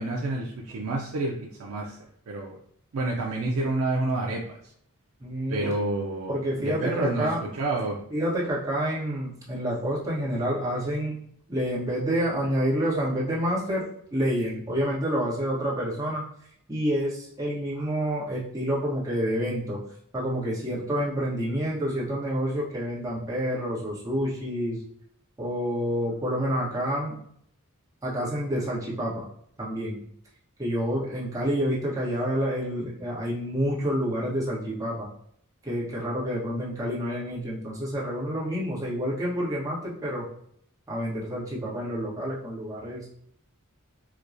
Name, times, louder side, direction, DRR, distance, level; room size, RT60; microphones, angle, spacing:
voice 1, 0.0-1.3 1.6-2.0 2.3-2.6 2.9-4.7 5.5-8.0, right 2 dB, 70° right, -1 dB, 0.4 m, -29 dB
voice 2, 5.2-5.7 6.3-7.4 8.1-11.2 11.5-16.3 16.7-19.8 20.1-24.8 25.4-27.2 28.0-29.3 29.6-30.0 30.6-35.1 35.6-40.2 40.9-43.1, equal, 15° right, -7 dB, 1.0 m, -28 dB
4.5 x 2.2 x 2.5 m, 0.68 s
head